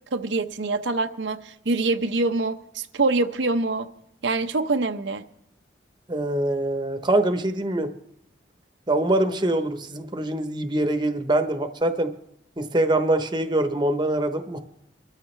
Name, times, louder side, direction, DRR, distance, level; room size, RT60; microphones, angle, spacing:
voice 1, 0.1-3.9 4.2-5.2, right 3 dB, 80° right, 0.7 m, -25 dB
voice 2, 6.1-7.9 8.9-12.1 12.6-14.6, right 1 dB, 25° right, 0.9 m, -24 dB
23.5 x 13.5 x 3.3 m
head